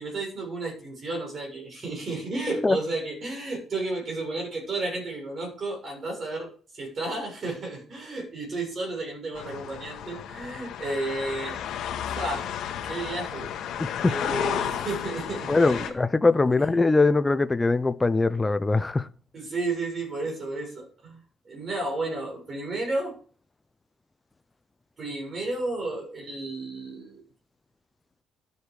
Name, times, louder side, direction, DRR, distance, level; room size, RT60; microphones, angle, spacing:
voice 1, 0.0-6.5 6.7-11.6 12.2-12.5 12.8-13.5 14.1-15.9 16.5-16.7 19.3-21.2 21.5-23.2 25.0-27.2, right 2 dB, 30° right, 7.0 m, -32 dB
sound 1, 9.4-15.9, left 9 dB, 65° left, 1.7 m, -33 dB
voice 2, 15.5-19.1, left 3 dB, 10° left, 0.5 m, -22 dB
12.5 x 8.1 x 4.9 m
cardioid pair, 165°, 0 cm